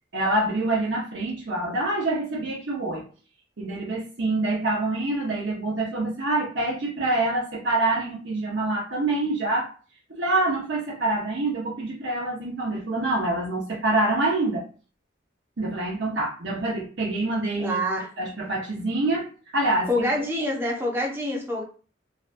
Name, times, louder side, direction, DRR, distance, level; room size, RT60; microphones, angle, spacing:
voice 1, 0.1-3.0 3.6-9.7 10.2-14.6 15.6-17.8 18.2-20.1 20.3-20.4, right 2 dB, 80° right, -5 dB, 0.8 m, -26 dB
voice 2, 17.6-18.1 19.9-21.6, left 1 dB, 10° right, -2 dB, 0.6 m, -26 dB
2.6 x 2.2 x 2.5 m, 0.38 s
head